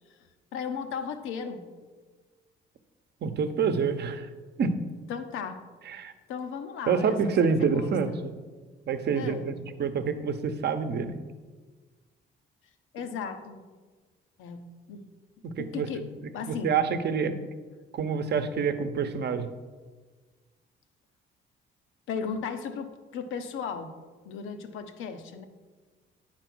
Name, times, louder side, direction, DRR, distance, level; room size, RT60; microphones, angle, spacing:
voice 1, 0.5-1.6 5.1-5.6 6.3-8.3 9.1-9.6 12.9-13.7 14.4-15.1 15.6-16.7 22.1-24.0 24.2-25.4, left 6 dB, 90° left, 8 dB, 0.8 m, -36 dB
voice 2, 3.2-4.3 4.6-4.7 5.9-6.1 6.9-8.3 8.9-9.5 9.8-11.1 15.4-15.9 16.5-17.3 17.9-19.5, right 6 dB, 55° right, 9 dB, 0.8 m, -27 dB
9.1 x 4.3 x 6.1 m, 1.4 s
cardioid pair, 90°, 20 cm